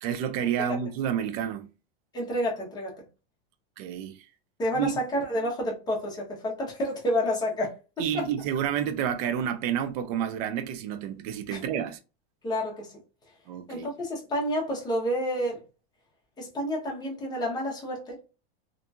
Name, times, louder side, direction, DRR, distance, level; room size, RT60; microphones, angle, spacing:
voice 1, 0.0-1.7 3.8-4.2 4.8-4.9 8.0-12.0 13.5-13.9, right 9 dB, 40° right, 0.4 m, -29 dB
voice 2, 2.1-3.0 4.6-7.8 8.1-8.3 11.5-11.6 12.4-12.9 13.7-15.6 16.4-18.2, equal, 15° left, 0.9 m, -29 dB
2.7 x 2.6 x 2.3 m
supercardioid pair, 155°, 30 cm